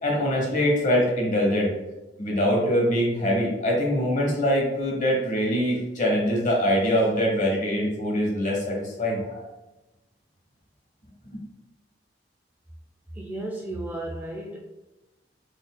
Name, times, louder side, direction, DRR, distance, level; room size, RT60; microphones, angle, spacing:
voice 1, 0.0-1.7 2.2-9.4, equal, 45° left, -2 dB, 1.0 m, -23 dB
voice 2, 13.1-14.6, right 1 dB, 10° right, -1 dB, 0.3 m, -33 dB
3.9 x 3.2 x 2.2 m, 1.0 s
head